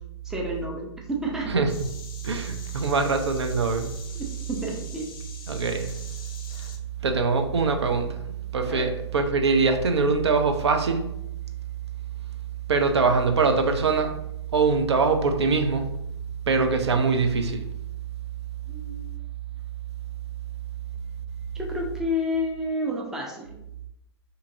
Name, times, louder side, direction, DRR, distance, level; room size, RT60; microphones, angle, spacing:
voice 1, 0.2-1.5 4.1-5.1 8.7-8.9 18.7-19.1 21.5-23.5, left 1 dB, 5° right, -1 dB, 0.4 m, -30 dB
voice 2, 1.5-1.8 2.2-3.9 5.5-6.0 7.0-11.1 12.7-14.1 14.5-15.9 16.5-17.6, right 4 dB, 75° right, 6 dB, 0.4 m, -23 dB
sound 1, 1.7-6.8, left 5 dB, 55° left, 0.5 m, -45 dB
2.6 x 2.5 x 2.6 m, 0.82 s
figure-of-eight pair, 110°, 14 cm